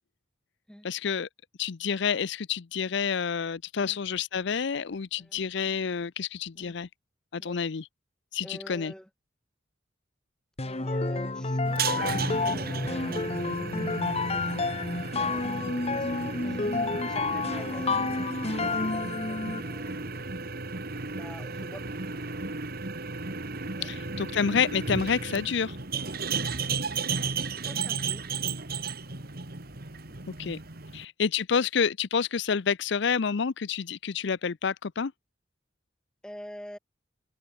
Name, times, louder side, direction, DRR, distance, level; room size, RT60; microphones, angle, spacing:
voice 1, 0.8-1.3 1.6-6.9 7.3-7.9 8.3-8.9 23.8-25.8 30.4-30.6 30.9-35.1, left 6 dB, 65° left, 0.6 m, -28 dB
voice 2, 8.4-9.1 10.6-13.3 13.9-14.8 15.9-20.3 21.1-22.0 23.8-23.9 27.4-28.3 30.1-30.5 36.2-36.8, equal, 5° left, 4.1 m, -47 dB
sound 1, 10.6-19.8, left 3 dB, 35° left, 1.5 m, -30 dB
sound 2, 11.6-31.0, right 4 dB, 55° right, 2.3 m, -34 dB
head